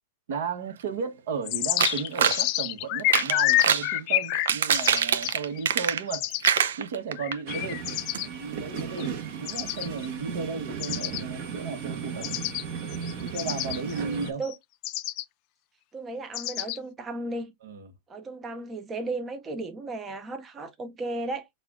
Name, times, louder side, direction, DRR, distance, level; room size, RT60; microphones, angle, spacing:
voice 1, 0.3-6.3 6.8-7.8 8.2-12.3 13.2-14.4 17.6-17.9, right 5 dB, 65° right, 1.2 m, -34 dB
sound 1, 1.5-6.5 7.2-8.3 8.8-9.1 9.5-10.1 10.8-11.2 12.2-12.6 12.9-14.5 14.8-15.2 16.3-16.8, left 17 dB, 45° left, 0.5 m, -28 dB
sound 2, 1.8-2.4 3.0-3.9 4.3-6.2 6.4-7.4 7.7-7.8 8.1-8.2, right 8 dB, 90° right, 0.6 m, -24 dB
sound 3, 7.5-14.3, right 7 dB, 50° right, 1.2 m, -36 dB
voice 2, 14.0-14.5 15.9-17.5 18.1-21.5, right 2 dB, 20° right, 0.5 m, -35 dB
6.6 x 2.4 x 2.5 m
supercardioid pair, 150°, 0 cm